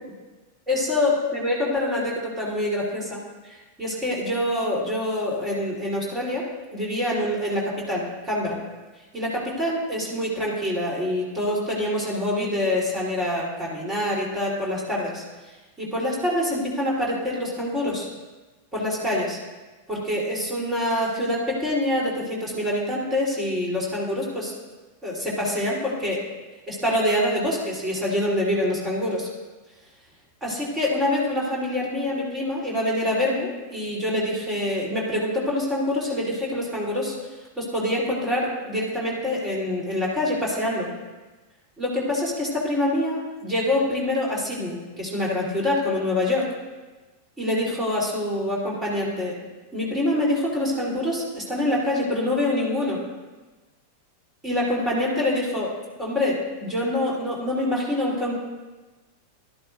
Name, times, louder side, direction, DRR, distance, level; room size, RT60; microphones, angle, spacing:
voice 1, 0.7-3.2 3.4-6.5 6.7-8.6 9.1-15.2 15.8-18.1 18.7-19.4 19.9-24.5 25.0-26.2 26.7-29.3 30.4-37.1 37.6-40.9 41.8-46.4 47.4-49.4 49.7-53.0 54.4-55.7 56.0-58.3, left 1 dB, 15° right, -4 dB, 3.6 m, -25 dB
12.5 x 11.0 x 2.6 m, 1.2 s
figure-of-eight pair, 90°, 0 cm